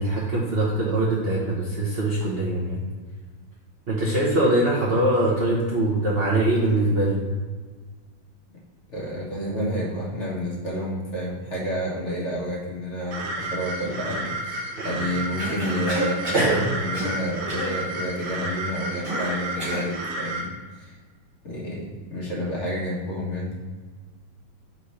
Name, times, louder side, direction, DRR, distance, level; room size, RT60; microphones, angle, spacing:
voice 1, 0.0-2.8 3.9-7.3 14.8-15.1 16.3-16.7, right 1 dB, 40° right, -5 dB, 0.9 m, -23 dB
voice 2, 8.9-21.0 21.4-23.6, equal, 35° left, -3 dB, 1.6 m, -30 dB
sound 1, 13.1-20.4, right 2 dB, 75° right, 1.9 m, -32 dB
Cough, 15.4-16.5 16.9-17.2 17.5-17.8 19.0-19.9, equal, 15° right, 1.5 m, -31 dB
5.1 x 4.3 x 5.6 m, 1.5 s
omnidirectional pair, 2.3 m